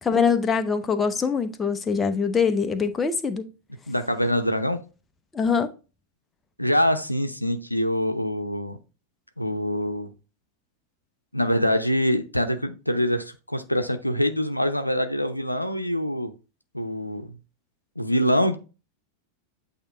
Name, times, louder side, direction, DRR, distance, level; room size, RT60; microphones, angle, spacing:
voice 1, 0.0-3.5 5.3-5.7, left 5 dB, 15° left, 0.6 m, -23 dB
voice 2, 3.9-4.8 6.6-8.8 9.4-10.1 11.3-16.3 16.7-17.4 18.0-18.6, equal, 90° left, 0.7 m, -24 dB
8.5 x 2.9 x 4.3 m
figure-of-eight pair, 90°, 0 cm